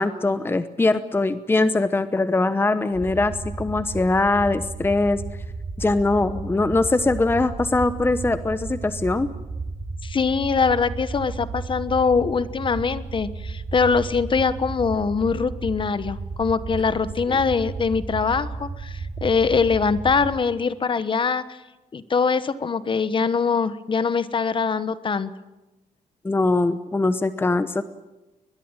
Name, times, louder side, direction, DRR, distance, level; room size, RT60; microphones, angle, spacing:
voice 1, 0.0-5.2 5.8-9.3 17.3-17.4 26.2-27.8, left 2 dB, 15° left, 12 dB, 1.0 m, -22 dB
sound 1, 2.9-20.4, right 4 dB, 35° right, 4.5 m, -34 dB
voice 2, 10.0-21.6 21.9-25.3, left 5 dB, 35° left, 14 dB, 1.2 m, -23 dB
22.5 x 21.5 x 9.0 m, 1.0 s
cardioid pair, 125°, 14 cm